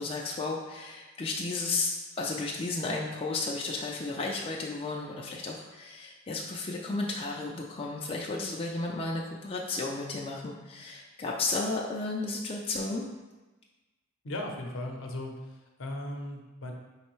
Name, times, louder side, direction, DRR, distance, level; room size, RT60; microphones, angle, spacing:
voice 1, 0.0-13.1, left 3 dB, 25° left, -2 dB, 0.3 m, -33 dB
voice 2, 14.2-16.7, left 1 dB, 65° left, 2 dB, 0.6 m, -37 dB
5.2 x 3.2 x 3.1 m, 1.2 s
head